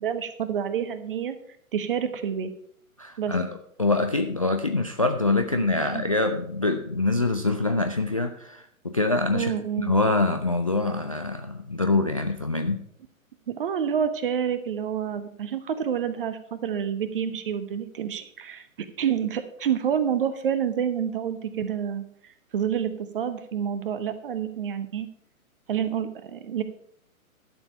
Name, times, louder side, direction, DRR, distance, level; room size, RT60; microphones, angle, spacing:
voice 1, 0.0-1.4 1.7-2.5 3.2-3.3 5.5-6.0 9.3-9.9 13.5-18.7 19.0-25.1 25.7-26.6, right 8 dB, 40° right, 11 dB, 1.0 m, -28 dB
voice 2, 3.0-3.5 3.8-9.5 9.8-12.8, left 2 dB, 25° left, 6 dB, 0.4 m, -25 dB
11.5 x 6.7 x 5.6 m, 0.67 s
figure-of-eight pair, 125°, 42 cm